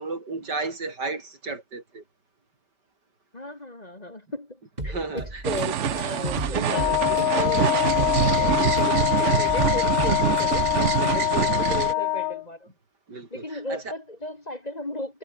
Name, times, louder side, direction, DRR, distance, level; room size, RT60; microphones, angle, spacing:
voice 1, 0.0-2.0 4.9-5.4 6.5-6.9 7.5-7.8 8.9-9.1 10.7-11.9 13.1-13.9, right 3 dB, 90° right, 4.9 m, -34 dB
voice 2, 3.3-5.0 5.4-10.7 11.1-12.7 13.3-15.2, left 1 dB, 25° left, 2.2 m, -35 dB
sound 1, 4.8-11.2, right 1 dB, 25° right, 4.8 m, -33 dB
sound 2, 5.4-11.9, right 10 dB, 55° right, 1.0 m, -25 dB
Wind instrument woodwind instrument, 6.7-12.4, left 14 dB, 70° left, 1.0 m, -24 dB
omnidirectional pair, 1.8 m